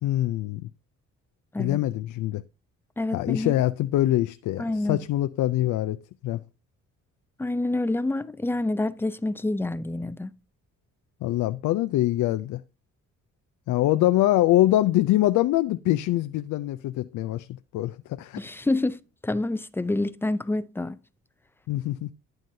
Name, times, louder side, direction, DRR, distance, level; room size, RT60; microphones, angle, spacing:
voice 1, 0.0-0.7 1.6-2.4 3.1-6.0 6.2-6.4 11.2-12.6 13.7-17.5 17.7-18.4 21.7-22.1, left 15 dB, 75° left, 0.5 m, -24 dB
voice 2, 3.0-3.5 4.6-5.0 7.4-10.3 18.4-19.0 19.2-21.0, left 2 dB, 10° left, 0.5 m, -27 dB
11.5 x 9.1 x 2.7 m
cardioid pair, 90°, 30 cm